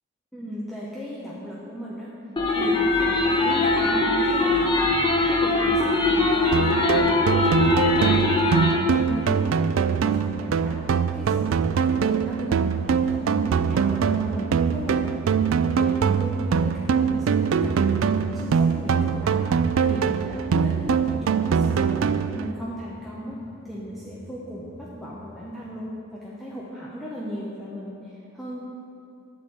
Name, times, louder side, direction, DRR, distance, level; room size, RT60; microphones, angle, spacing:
voice 1, 0.3-2.1 2.5-4.7 5.3-8.4 8.8-9.6 9.9-10.8 11.1-15.1 15.4-22.1 22.3-23.4 23.6-28.6, equal, ahead, -8 dB, 1.0 m, -36 dB
sound 1, 2.4-8.8, left 2 dB, 25° left, 0.9 m, -21 dB
sound 2, 6.5-22.5, right 6 dB, 75° right, 0.4 m, -23 dB
sound 3, 12.7-25.6, equal, 40° left, 1.1 m, -41 dB
12.0 x 4.4 x 7.8 m, 2.7 s
head